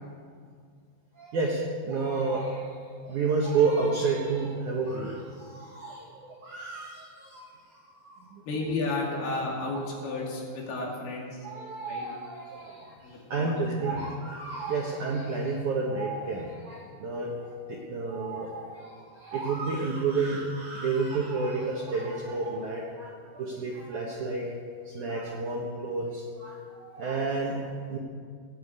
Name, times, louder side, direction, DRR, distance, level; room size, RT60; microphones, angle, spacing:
voice 1, 1.2-2.7 3.0-7.5 8.0-8.2 10.2-10.3 10.8-11.0 11.4-12.9 13.3-24.5 24.9-28.0, right 4 dB, 65° right, -1 dB, 1.9 m, -30 dB
voice 2, 8.5-11.4 11.9-12.1 13.0-14.0, left 3 dB, 65° left, -2 dB, 4.2 m, -33 dB
16.5 x 8.9 x 8.6 m, 2.1 s
omnidirectional pair, 5.2 m